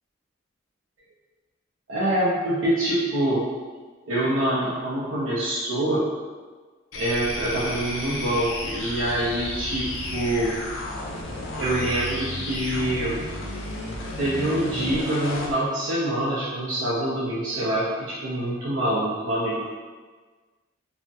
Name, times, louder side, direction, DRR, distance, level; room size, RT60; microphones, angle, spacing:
voice 1, 1.9-3.4 4.1-6.0 7.0-10.5 11.5-13.2 14.2-19.6, right 1 dB, 70° right, -7 dB, 0.5 m, -25 dB
sound 1, 6.9-15.6, left 1 dB, 70° left, 0.5 m, -32 dB
3.3 x 2.0 x 2.7 m, 1.4 s
head